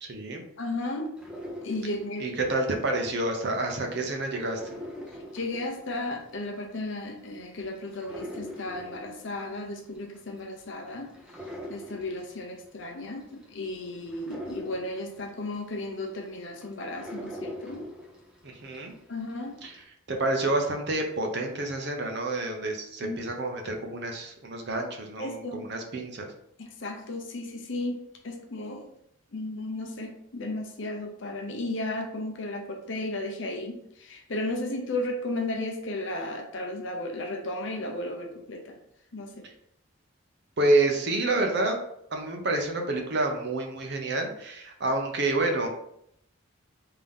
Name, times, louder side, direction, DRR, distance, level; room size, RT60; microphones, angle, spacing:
voice 1, 0.0-0.4 2.2-4.8 18.4-18.9 19.6-19.7 20.1-26.3 40.6-41.8 42.1-45.7, right 2 dB, 55° right, 3 dB, 0.7 m, -28 dB
voice 2, 0.6-1.1 1.6-2.3 5.3-11.1 11.4-17.8 19.1-19.6 23.0-23.2 25.2-25.7 26.6-28.9 29.3-38.8 39.1-39.4, left 2 dB, 60° left, 3 dB, 0.7 m, -34 dB
sound 1, 1.2-3.4 3.8-18.9 19.3-19.8, equal, 5° right, 0.6 m, -43 dB
3.6 x 2.8 x 3.5 m, 0.73 s
head